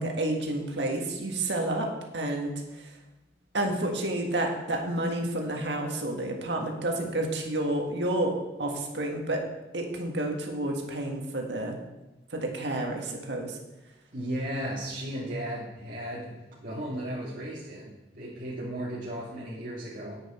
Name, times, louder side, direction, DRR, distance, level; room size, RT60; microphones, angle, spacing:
voice 1, 0.0-2.9 3.5-9.4 9.7-11.8 12.3-13.6, right 1 dB, 90° right, 2 dB, 1.7 m, -30 dB
voice 2, 14.1-20.2, right 1 dB, 50° right, -9 dB, 2.3 m, -35 dB
10.0 x 8.0 x 4.4 m, 1.0 s
head